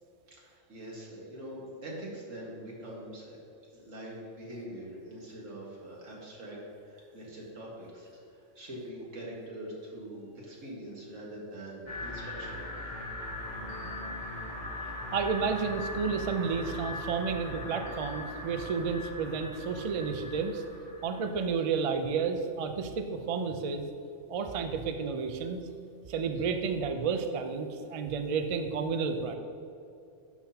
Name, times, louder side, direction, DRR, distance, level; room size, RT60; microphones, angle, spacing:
voice 1, 0.3-3.4 3.7-12.9 26.4-26.5, right 1 dB, 85° right, -4 dB, 2.0 m, -44 dB
sound 1, 11.9-21.4, left 2 dB, 40° left, 1.2 m, -40 dB
voice 2, 15.1-20.6 21.0-23.8 24.3-25.6 26.1-29.3, right 5 dB, 55° right, 6 dB, 0.4 m, -31 dB
12.0 x 5.9 x 2.8 m, 2.6 s
omnidirectional pair, 1.3 m